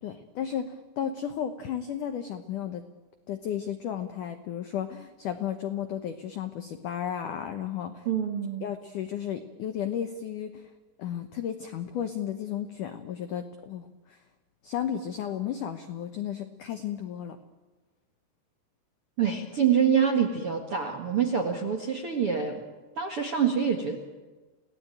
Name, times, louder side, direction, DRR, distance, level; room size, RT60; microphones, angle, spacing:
voice 1, 0.0-2.8 3.3-8.1 8.6-10.7 11.0-14.2 14.6-17.4, left 9 dB, 90° left, 8 dB, 1.8 m, -33 dB
voice 2, 8.0-8.6 19.2-22.6 23.0-24.0, right 7 dB, 60° right, 4 dB, 1.4 m, -26 dB
29.0 x 18.5 x 9.2 m, 1.3 s
omnidirectional pair, 5.4 m